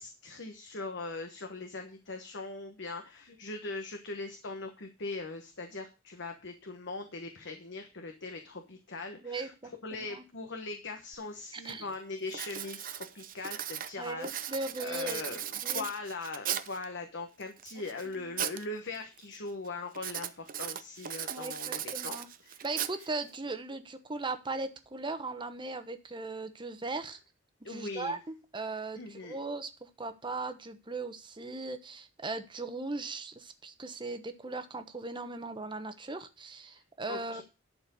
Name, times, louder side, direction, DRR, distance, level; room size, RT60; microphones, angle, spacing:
voice 1, 0.0-9.5 9.8-14.5 14.8-22.2 22.4-22.6 27.6-28.2 28.9-29.4 37.1-37.4, left 3 dB, 60° left, 5 dB, 1.2 m, -40 dB
voice 2, 9.2-10.2 11.5-11.9 14.0-15.9 18.1-18.4 21.3-22.3 22.6-27.2 27.7-37.4, right 3 dB, 25° right, 9 dB, 1.0 m, -38 dB
Writing, 11.1-11.2 11.7-11.9 12.3-16.8 17.4-18.6 18.9-19.4 19.9-23.4, right 10 dB, 45° right, 0.7 m, -37 dB
11.0 x 4.5 x 6.9 m, 0.31 s
head